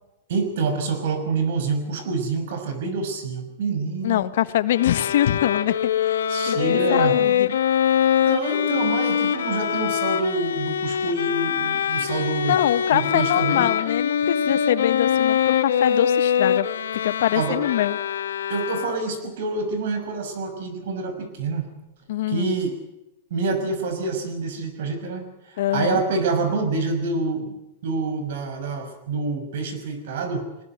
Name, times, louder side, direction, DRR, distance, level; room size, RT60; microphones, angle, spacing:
voice 1, 0.3-4.2 6.3-7.2 8.2-12.6 12.9-13.7 17.3-17.6 18.5-21.7 22.3-22.8 23.3-25.2 25.7-27.6 27.8-30.5, right 3 dB, 70° right, 9 dB, 6.1 m, -27 dB
voice 2, 4.0-7.6 12.0-12.1 12.5-16.7 17.0-18.0 22.1-22.6 25.6-26.0, left 12 dB, 70° left, 14 dB, 1.3 m, -24 dB
Bowed string instrument, 4.7-19.2, left 8 dB, 90° left, 1.5 m, -23 dB
22.0 x 20.0 x 8.0 m, 0.92 s
hypercardioid pair, 130°, 0 cm